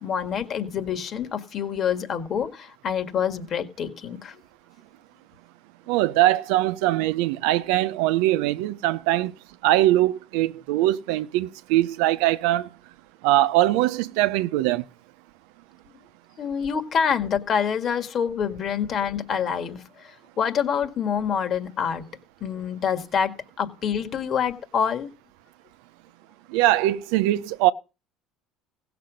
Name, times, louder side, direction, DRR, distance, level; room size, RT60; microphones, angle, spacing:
voice 1, 0.0-4.4 16.4-22.1 22.4-25.1, left 7 dB, 45° left, 1.8 m, -26 dB
voice 2, 5.9-9.3 9.6-12.7 13.2-14.8 26.5-27.7, right 15 dB, 80° right, 0.6 m, -22 dB
16.0 x 6.8 x 5.2 m
supercardioid pair, 105°, 0 cm